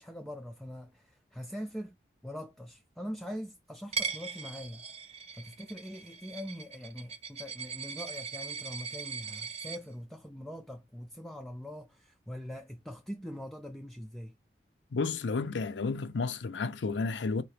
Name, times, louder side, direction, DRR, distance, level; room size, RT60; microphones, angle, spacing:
voice 1, 0.0-2.0 2.2-14.3, equal, ahead, 0.4 m, -43 dB
Coin (dropping), 3.9-9.8, right 5 dB, 35° right, 0.8 m, -39 dB
voice 2, 14.9-17.4, left 4 dB, 80° left, 0.5 m, -31 dB
4.5 x 2.9 x 3.3 m
head